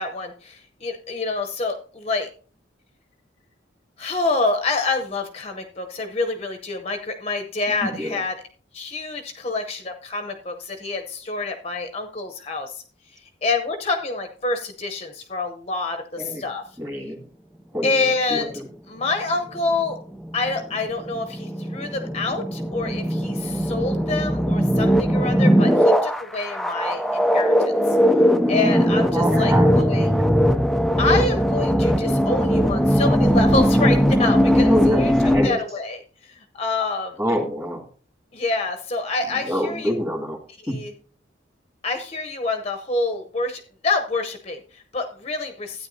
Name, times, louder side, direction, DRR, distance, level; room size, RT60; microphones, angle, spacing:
voice 1, 0.0-2.3 4.0-8.4 8.7-12.8 13.4-16.6 17.8-18.5 18.9-20.0 20.3-27.5 28.5-30.2 31.0-35.1 35.4-37.2 38.3-40.0 40.6-40.9 41.8-45.9, left 3 dB, 35° left, 5 dB, 0.7 m, -27 dB
voice 2, 7.8-8.2 16.2-16.4 16.8-17.2 17.7-17.9 18.3-18.5 29.1-30.0 34.6-35.6 37.2-37.9 39.5-40.4 40.7-40.8, equal, 15° right, 2 dB, 2.0 m, -25 dB
sound 1, 19.0-35.5, equal, ahead, 0.3 m, -19 dB
13.0 x 9.1 x 2.7 m, 0.41 s
head